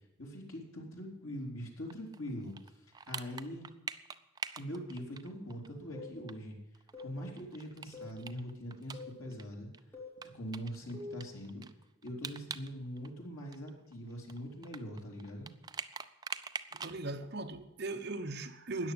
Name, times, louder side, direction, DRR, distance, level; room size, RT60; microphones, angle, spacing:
voice 1, 0.2-2.5 2.9-3.7 4.6-6.6 7.0-9.7 10.3-11.6 12.0-15.5, equal, 85° left, 3.7 m, -42 dB
sound 1, 1.9-5.7 6.0-6.1 6.3-6.4 6.7-9.4 9.7-9.8 10.2-12.7 13.0-17.0, right 5 dB, 20° right, 0.4 m, -44 dB
sound 2, 5.9-6.2 6.9-7.2 7.9-8.2 8.9-9.2 9.9-10.2 10.9-11.3, left 3 dB, 10° left, 3.2 m, -45 dB
voice 2, 16.7-18.9, right 2 dB, 55° right, 1.1 m, -39 dB
13.5 x 9.7 x 7.9 m
head